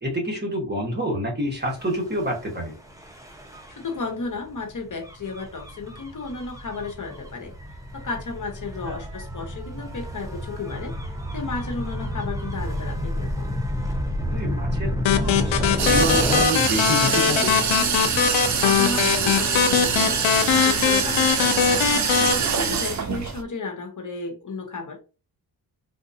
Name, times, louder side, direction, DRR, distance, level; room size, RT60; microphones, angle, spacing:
voice 1, 0.0-2.7 8.8-9.0 14.3-17.6, equal, 25° right, 0 dB, 1.3 m, -28 dB
Gull seagull / Waves surf / Siren, 1.7-16.4, equal, 5° right, 0.9 m, -30 dB
voice 2, 3.7-7.5 7.9-13.5 18.6-21.9 22.3-25.0, left 3 dB, 45° left, 3 dB, 0.9 m, -34 dB
sound 1, 15.0-22.3, left 8 dB, 85° left, 0.6 m, -21 dB
sound 2, 15.8-23.4, right 6 dB, 40° right, 0.6 m, -24 dB
3.8 x 2.5 x 2.6 m, 0.32 s
cardioid pair, 70°, 44 cm